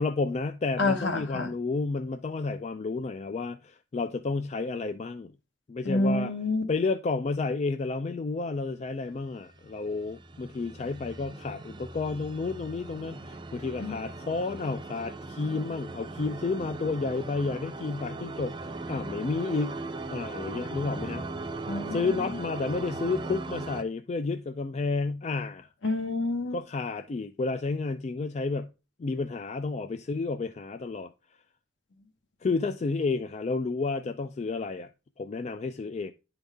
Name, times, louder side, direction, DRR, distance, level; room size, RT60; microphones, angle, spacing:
voice 1, 0.0-5.3 5.7-6.3 6.7-19.8 20.1-21.3 21.9-25.7 26.5-28.7 29.0-31.1 32.4-34.9 35.2-36.1, left 3 dB, 35° left, 0.3 m, -31 dB
voice 2, 0.8-1.5 5.8-6.6 13.8-14.0 21.7-22.4 25.8-26.6, left 2 dB, 60° left, 1.1 m, -28 dB
sound 1, 9.5-23.8, right 3 dB, 25° right, 0.5 m, -39 dB
10.0 x 4.0 x 3.4 m
head